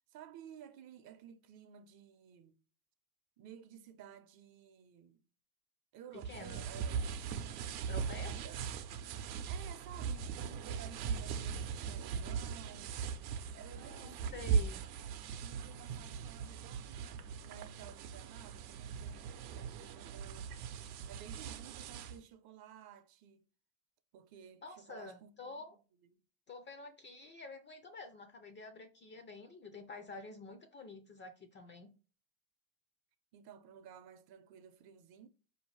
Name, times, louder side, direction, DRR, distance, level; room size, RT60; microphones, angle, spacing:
voice 1, 0.1-2.6 3.4-5.2 5.9-7.0 8.2-8.6 9.5-13.0 13.5-14.4 15.4-20.6 21.1-23.4 24.1-25.6 33.3-35.3, right 8 dB, 50° right, 0.6 m, -54 dB
voice 2, 6.1-6.6 7.9-8.3 13.7-14.8 24.6-25.7 26.5-31.9, left 3 dB, 25° left, 0.3 m, -49 dB
sound 1, 6.2-22.2, right 6 dB, 80° right, 0.7 m, -39 dB
4.9 x 2.8 x 3.1 m
supercardioid pair, 110°, 50 cm